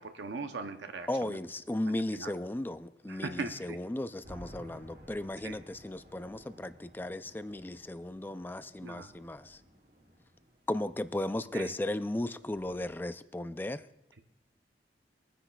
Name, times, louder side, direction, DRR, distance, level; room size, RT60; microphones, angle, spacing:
voice 1, 0.0-1.4 2.2-2.3 3.1-3.8 5.4-5.6 8.8-9.1 11.5-11.7, right 4 dB, 90° right, 7 dB, 0.7 m, -39 dB
voice 2, 1.1-9.6 10.7-13.8, left 1 dB, 10° left, 12 dB, 0.3 m, -36 dB
sound 1, 4.2-12.9, equal, 55° right, 2.1 m, -55 dB
22.5 x 9.8 x 2.3 m, 0.94 s
head